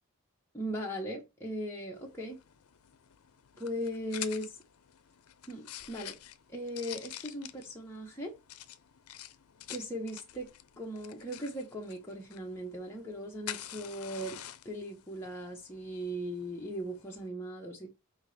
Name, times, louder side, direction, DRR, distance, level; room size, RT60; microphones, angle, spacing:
voice 1, 0.5-2.4 3.6-4.6 5.5-6.2 6.5-8.3 9.7-10.5 10.8-14.4 14.6-17.9, equal, 10° left, 0.9 m, -38 dB
sound 1, 1.9-17.3, left 12 dB, 80° left, 0.5 m, -48 dB
5.6 x 2.8 x 3.2 m
head